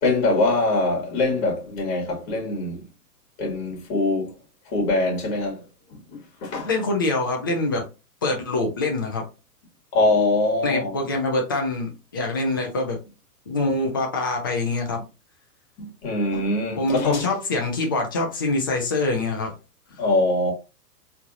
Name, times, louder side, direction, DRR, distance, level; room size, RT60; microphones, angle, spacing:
voice 1, 0.0-2.8 3.4-4.3 4.7-5.6 6.1-6.7 9.9-10.9 15.8-17.2 20.0-20.5, left 2 dB, 40° left, 2.2 m, -23 dB
voice 2, 6.6-7.8 8.2-9.3 10.6-13.0 13.5-15.0 16.8-19.5, left 2 dB, 15° left, 0.3 m, -25 dB
4.3 x 3.1 x 2.6 m
figure-of-eight pair, 115°, 48 cm